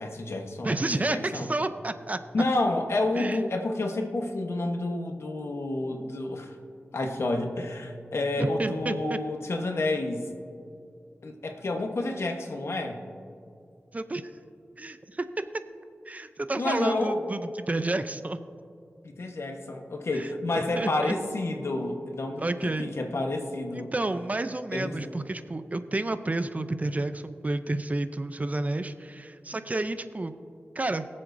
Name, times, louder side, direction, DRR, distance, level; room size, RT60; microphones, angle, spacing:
voice 1, 0.0-0.8 1.1-1.5 2.3-6.5 6.9-10.3 11.2-13.0 16.6-17.2 19.0-23.9 24.7-25.0, left 2 dB, 75° left, 3 dB, 1.1 m, -29 dB
voice 2, 0.6-2.2 3.2-3.4 8.4-9.2 13.9-14.3 14.8-15.3 16.1-18.4 20.1-20.3 20.7-21.1 22.4-22.9 23.7-30.3 30.8-31.1, right 2 dB, 35° right, 10 dB, 0.5 m, -30 dB
21.5 x 7.5 x 2.6 m, 2.4 s
wide cardioid pair, 80°, 5 cm